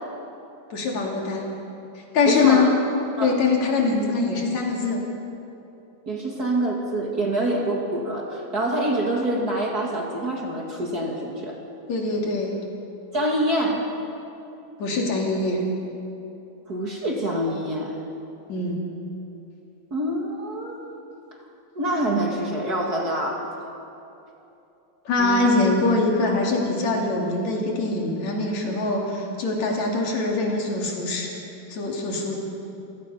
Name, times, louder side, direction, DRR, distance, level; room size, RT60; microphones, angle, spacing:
voice 1, 0.7-1.5 2.0-2.7 3.2-5.0 11.9-12.6 14.8-15.6 18.5-18.8 25.1-31.3 31.7-32.4, left 3 dB, 60° left, -1 dB, 3.8 m, -23 dB
voice 2, 2.3-2.7 3.2-3.3 6.1-11.6 13.1-13.9 16.7-18.0 19.9-20.8 21.8-23.5 25.2-25.5, right 1 dB, 35° right, 0 dB, 1.9 m, -26 dB
27.5 x 17.5 x 5.6 m, 2.9 s
omnidirectional pair, 3.8 m